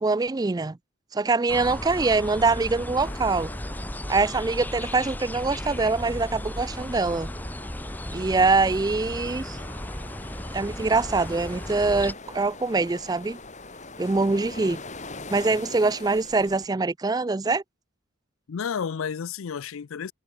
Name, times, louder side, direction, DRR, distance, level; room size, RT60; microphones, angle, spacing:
voice 1, 0.0-0.8 1.1-3.5 4.1-7.3 8.1-9.6 10.5-13.4 14.0-14.8 15.3-17.6, right 3 dB, 20° right, 0.3 m, -24 dB
sound 1, 1.5-12.1, left 1 dB, 10° left, 1.5 m, -35 dB
sound 2, 3.0-16.7, left 3 dB, 35° left, 5.5 m, -44 dB
voice 2, 18.5-20.1, left 6 dB, 75° left, 0.5 m, -32 dB
head